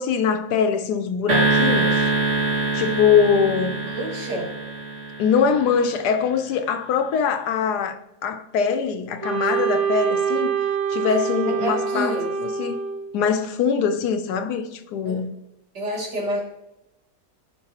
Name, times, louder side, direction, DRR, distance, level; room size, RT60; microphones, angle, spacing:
voice 1, 0.0-2.1 2.7-3.7 5.2-10.6 10.9-12.8 13.1-15.3, left 6 dB, 75° left, 1.2 m, -22 dB
sound 1, 1.3-5.8, right 3 dB, 45° right, 2.0 m, -24 dB
voice 2, 3.9-4.5 11.5-12.3 15.0-15.2 15.7-16.4, right 1 dB, 80° right, 2.9 m, -28 dB
Wind instrument woodwind instrument, 9.2-13.2, right 6 dB, 25° right, 0.8 m, -25 dB
15.0 x 5.3 x 2.9 m
omnidirectional pair, 1.8 m